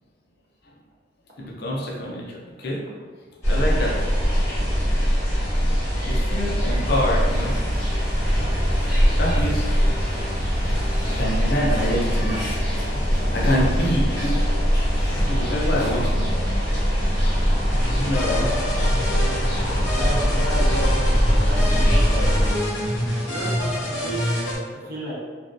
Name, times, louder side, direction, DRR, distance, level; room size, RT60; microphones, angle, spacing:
voice 1, 1.4-2.8 3.5-4.0 6.1-7.6 9.2-9.7 10.3-12.4 12.8-14.4 14.8-16.3 17.9-18.6, equal, 60° left, -3 dB, 0.5 m, -27 dB
sound 1, 3.4-22.5, equal, 15° left, 1.1 m, -22 dB
sound 2, 6.7-16.2, equal, 5° right, 0.8 m, -42 dB
sound 3, 17.7-24.6, left 1 dB, 85° left, 0.8 m, -27 dB
voice 2, 19.8-20.9 21.3-22.4 23.3-24.3 24.7-25.2, right 1 dB, 55° right, -7 dB, 0.8 m, -33 dB
2.4 x 2.2 x 2.4 m, 1.5 s
head